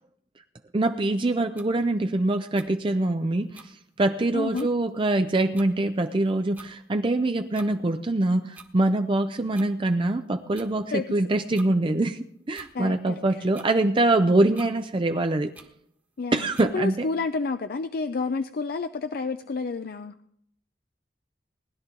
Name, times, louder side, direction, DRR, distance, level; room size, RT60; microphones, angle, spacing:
voice 1, 0.7-12.2 12.5-15.5 16.3-17.1, right 2 dB, 30° right, 7 dB, 0.5 m, -24 dB
sound 1, 1.6-1.7 2.5-2.7 3.5-3.7 4.2-4.3 4.5-4.7 5.5-5.7 6.5-6.7 7.5-7.7 8.5-8.7 9.5-9.7 10.5-10.7 11.5-11.7 12.5-12.7 13.5-13.7 14.5-14.7 15.5-15.7 16.5-16.7, right 3 dB, 10° right, 1.3 m, -46 dB
voice 2, 4.3-4.7 10.9-11.1 12.7-13.4 16.2-20.1, left 4 dB, 60° left, 10 dB, 0.5 m, -30 dB
19.0 x 11.0 x 3.8 m, 0.72 s
head